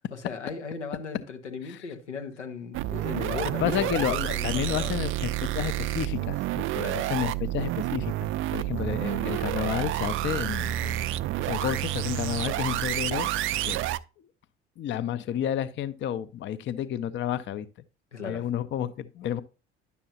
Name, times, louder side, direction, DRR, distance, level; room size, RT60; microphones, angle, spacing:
voice 1, 0.1-5.0 6.8-7.1 18.1-18.5, left 5 dB, 85° left, 0.9 m, -37 dB
sound 1, 2.7-14.0, right 14 dB, 35° right, 0.4 m, -29 dB
voice 2, 3.6-11.0 11.4-13.3 13.6-13.8 14.8-17.7 18.2-19.4, left 10 dB, 35° left, 0.6 m, -31 dB
10.5 x 6.9 x 2.7 m
figure-of-eight pair, 60°, 35 cm